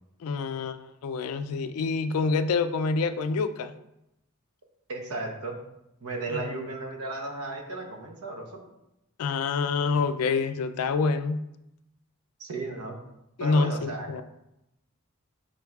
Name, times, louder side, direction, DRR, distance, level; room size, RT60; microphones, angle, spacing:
voice 1, 0.2-3.7 6.3-6.6 9.2-11.4 13.4-14.2, left 4 dB, 80° left, 10 dB, 0.3 m, -27 dB
voice 2, 4.9-5.6 6.0-8.6 12.4-13.0 13.4-14.1, right 3 dB, 80° right, 2 dB, 0.8 m, -35 dB
6.1 x 3.8 x 2.3 m, 0.87 s
head